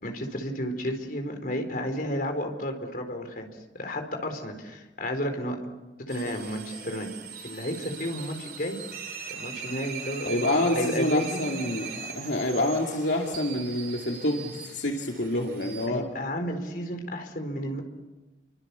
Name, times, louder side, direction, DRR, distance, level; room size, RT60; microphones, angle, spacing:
voice 1, 0.0-3.5 3.7-5.6 6.0-7.1 7.4-8.8 9.3-10.3 10.7-11.5 15.9-17.8, equal, 50° left, 5 dB, 4.3 m, -32 dB
sound 1, 6.1-15.9, right 6 dB, 55° right, 3.7 m, -40 dB
voice 2, 10.3-16.1, left 1 dB, 70° left, 0 dB, 2.7 m, -27 dB
30.0 x 24.5 x 7.0 m, 1.1 s
head